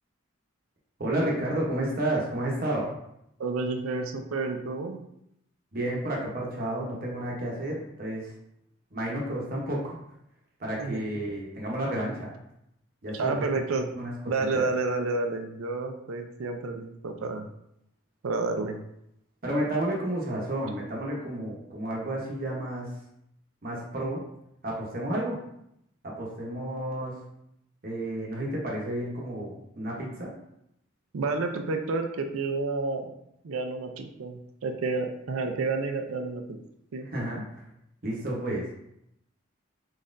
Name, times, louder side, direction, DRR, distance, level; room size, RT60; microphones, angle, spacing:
voice 1, 1.0-2.9 5.7-8.3 8.9-10.0 10.6-12.3 13.0-13.3 13.9-14.1 14.5-14.6 19.4-22.9 23.6-24.2 24.6-25.4 26.0-27.2 27.8-30.3 37.1-37.4 38.0-38.7, right 1 dB, 45° right, -3 dB, 0.9 m, -31 dB
voice 2, 3.4-5.0 10.8-11.0 13.1-13.9 14.3-17.5 18.2-18.8 31.1-33.1 33.4-36.6 36.9-37.1, right 3 dB, 85° right, 5 dB, 0.5 m, -30 dB
4.2 x 4.1 x 2.5 m, 0.79 s
head